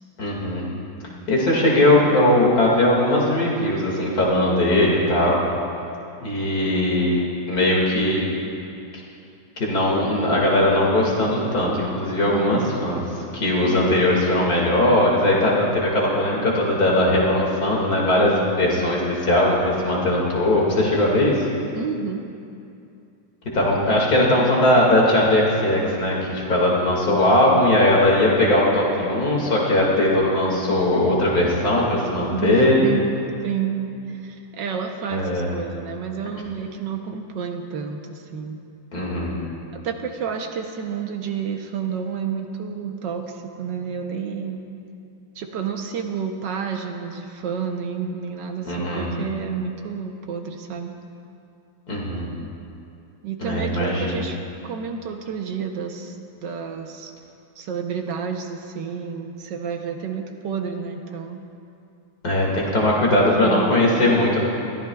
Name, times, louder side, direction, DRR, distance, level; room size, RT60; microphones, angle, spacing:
voice 1, 0.2-0.7 1.3-5.4 6.2-8.2 9.6-13.0 13.3-21.4 23.5-32.8 35.1-35.5 38.9-39.4 48.6-49.1 51.9-52.3 53.4-54.2 62.2-64.4, left 1 dB, 50° left, -3 dB, 2.6 m, -19 dB
voice 2, 12.3-12.8 13.6-13.9 21.7-22.2 32.3-33.1 33.4-38.6 39.8-44.6 45.3-50.9 53.2-56.1 56.4-57.1 57.6-61.4 63.1-63.7, right 6 dB, 70° right, 4 dB, 1.4 m, -30 dB
21.0 x 14.0 x 2.3 m, 2.6 s
omnidirectional pair, 2.1 m